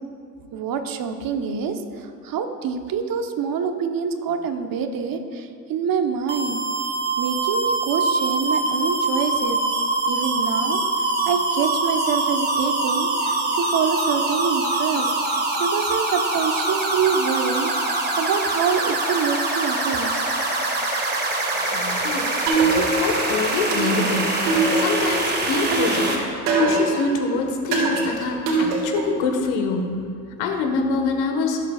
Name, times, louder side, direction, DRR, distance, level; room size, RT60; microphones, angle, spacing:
voice 1, 0.5-6.6 7.2-9.6 10.1-20.3, right 6 dB, 45° right, 6 dB, 1.2 m, -26 dB
sound 1, 6.3-26.2, right 2 dB, 20° right, 2.1 m, -24 dB
voice 2, 21.7-22.3 22.6-30.0 30.4-31.6, left 4 dB, 65° left, 4 dB, 1.6 m, -25 dB
sound 2, 22.5-23.2 23.7-25.2 25.7-27.1 27.7-29.2, right 3 dB, 70° right, 2.5 m, -22 dB
18.0 x 8.1 x 2.5 m, 2.3 s
hypercardioid pair, 65°, 46 cm